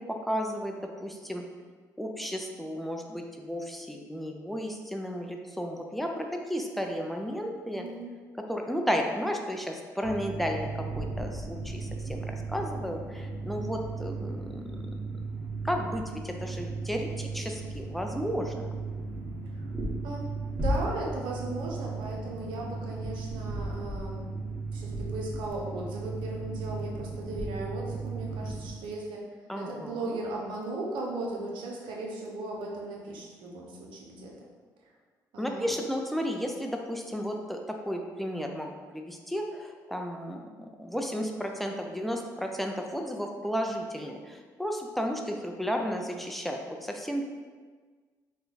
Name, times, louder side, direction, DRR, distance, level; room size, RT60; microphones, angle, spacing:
voice 1, 0.0-1.4 2.0-7.9 8.5-14.8 15.6-18.7 29.5-30.2 35.4-47.3, equal, ahead, 2 dB, 0.5 m, -33 dB
voice 2, 7.7-8.1 19.6-19.7 20.0-20.2 20.5-24.3 24.7-29.2 29.6-34.3 35.3-35.7, right 2 dB, 75° right, -2 dB, 0.7 m, -37 dB
sound 1, 10.0-28.8, right 3 dB, 20° right, 1.2 m, -35 dB
3.1 x 2.2 x 3.9 m, 1.5 s
supercardioid pair, 60°, 8 cm